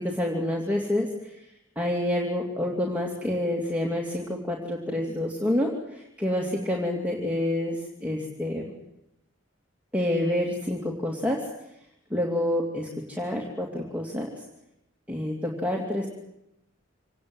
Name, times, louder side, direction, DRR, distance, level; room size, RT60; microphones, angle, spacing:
voice 1, 0.0-1.4 1.8-8.6 9.9-11.5 12.1-14.3 15.1-16.1, left 1 dB, 10° right, -2 dB, 2.8 m, -28 dB
25.5 x 19.0 x 8.0 m, 0.86 s
head